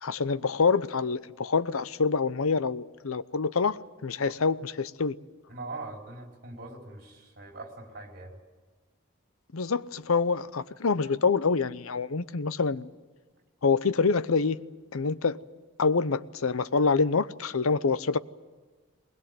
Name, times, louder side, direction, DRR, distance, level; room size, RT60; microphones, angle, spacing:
voice 1, 0.0-5.2 9.5-12.9 13.6-14.6 14.9-15.4 15.8-18.2, left 4 dB, 90° left, 0.8 m, -26 dB
voice 2, 5.5-8.4, right 2 dB, 45° right, 4.5 m, -42 dB
21.0 x 21.0 x 9.4 m
head